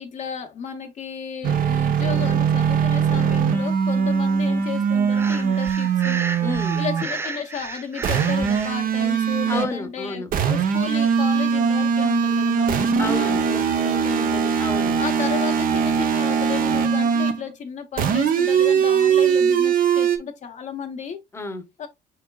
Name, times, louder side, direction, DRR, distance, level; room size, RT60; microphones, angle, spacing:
voice 1, 0.0-6.2 6.7-14.5 15.0-21.2 21.8-21.9, left 7 dB, 45° left, 0.7 m, -33 dB
sound 1, 1.4-7.1 8.0-9.8 10.3-17.4 18.0-20.2, right 7 dB, 55° right, 0.8 m, -21 dB
Breathing, 5.1-8.8, right 3 dB, 15° right, 0.4 m, -33 dB
voice 2, 6.4-6.8 9.5-10.3 13.0-13.5 14.6-15.0 21.3-21.6, left 2 dB, 15° left, 0.9 m, -30 dB
4.9 x 4.5 x 2.3 m
cardioid pair, 110°, 17 cm